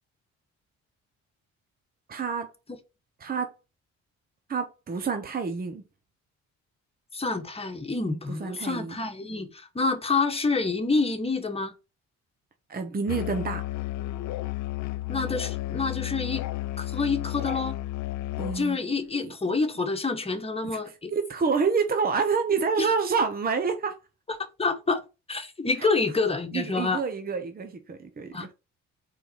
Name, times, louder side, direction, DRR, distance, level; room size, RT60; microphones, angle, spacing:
voice 1, 2.1-2.5 3.2-3.5 4.5-5.8 8.1-9.0 12.7-13.6 18.4-18.8 19.2-19.3 19.8-19.9 20.6-24.0 25.8-25.9 26.5-28.5, right 5 dB, 30° right, 0.9 m, -28 dB
voice 2, 7.1-11.7 15.1-16.5 16.8-17.8 18.5-21.1 22.8-22.9 24.6-25.0 25.3-27.0 28.3-28.5, left 4 dB, 20° left, 1.3 m, -27 dB
Musical instrument, 13.1-18.7, left 15 dB, 70° left, 0.5 m, -32 dB
4.6 x 4.0 x 5.3 m
cardioid pair, 90°, 30 cm